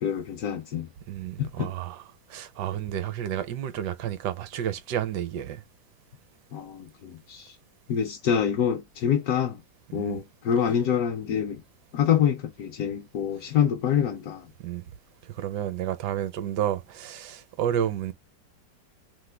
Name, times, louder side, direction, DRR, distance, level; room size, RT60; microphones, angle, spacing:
voice 1, 0.0-0.9 1.4-1.7 6.5-7.5 7.9-9.6 9.9-11.6 11.9-14.5, left 8 dB, 70° left, 0.9 m, -26 dB
voice 2, 1.1-2.0 2.3-5.6 9.9-10.2 14.6-14.8 15.2-18.1, right 10 dB, 75° right, 1.2 m, -31 dB
3.0 x 2.1 x 3.2 m
omnidirectional pair, 1.9 m